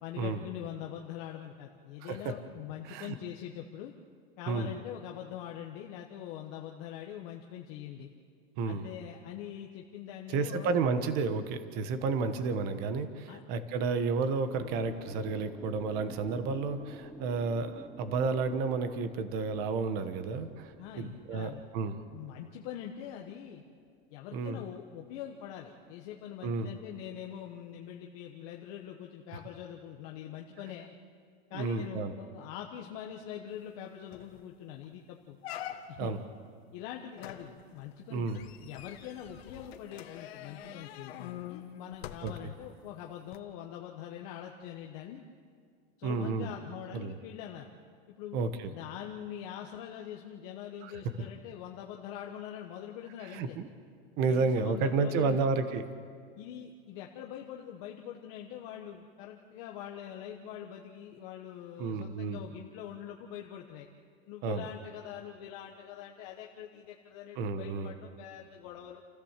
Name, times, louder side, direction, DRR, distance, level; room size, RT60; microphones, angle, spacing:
voice 1, 0.0-3.9 4.4-8.1 8.6-10.7 13.3-13.4 20.8-21.6 22.1-23.6 24.1-31.0 31.5-35.4 35.9-36.1 36.7-38.3 38.6-45.2 46.0-47.7 48.1-53.6 54.3-55.4 56.4-63.9 64.3-69.0, left 10 dB, 35° left, 1 dB, 1.2 m, -43 dB
voice 2, 2.0-2.4 2.8-3.1 4.5-4.7 8.6-8.9 10.3-22.0 24.3-24.6 26.4-26.7 29.3-29.4 31.5-32.1 36.0-36.2 38.1-38.4 42.2-42.5 46.0-46.5 46.9-47.2 48.3-48.7 50.8-50.9 53.2-53.7 54.2-55.8 61.8-62.4 64.4-64.7 67.3-67.9, right 4 dB, 30° right, 10 dB, 1.2 m, -31 dB
sound 1, 14.6-24.7 25.0-26.6, right 1 dB, 5° right, 0.8 m, -52 dB
sound 2, 33.7-33.8 34.1-34.4 34.8-34.9 35.4-36.2 37.2-42.7 43.3-43.4, left 11 dB, 75° left, 1.6 m, -45 dB
29.0 x 15.0 x 7.4 m, 2.1 s
supercardioid pair, 175°, 31 cm